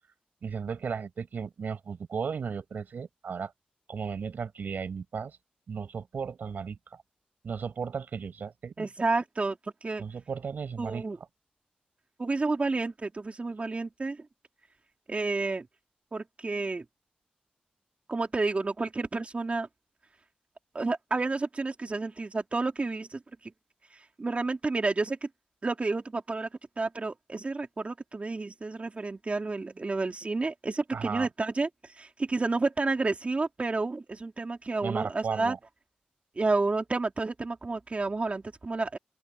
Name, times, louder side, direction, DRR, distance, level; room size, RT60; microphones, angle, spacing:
voice 1, 0.4-3.5 3.9-5.4 5.7-6.8 7.4-8.9 10.0-11.0 30.9-31.3 34.8-35.6, right 6 dB, 80° right, 5.2 m, -35 dB
voice 2, 8.8-10.0 10.8-11.2 12.2-14.2 15.1-15.6 16.1-16.8 18.1-19.7 20.7-23.5 23.9-25.2 25.6-26.5 26.8-35.5 36.3-39.0, right 3 dB, 45° right, 3.5 m, -30 dB
open air
cardioid pair, 50°, 3 cm